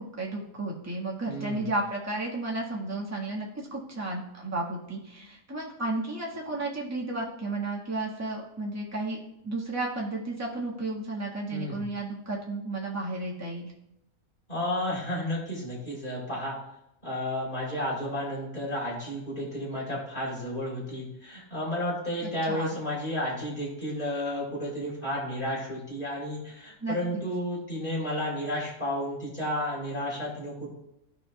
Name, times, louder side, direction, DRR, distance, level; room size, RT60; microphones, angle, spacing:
voice 1, 0.2-9.2 9.4-13.7 22.5-22.8 26.8-26.9, right 2 dB, 10° right, -4 dB, 1.3 m, -33 dB
voice 2, 1.3-1.7 11.5-11.9 14.5-16.6 17.0-30.7, left 1 dB, 35° left, -7 dB, 3.4 m, -32 dB
14.0 x 5.3 x 2.3 m, 0.84 s
omnidirectional pair, 1.5 m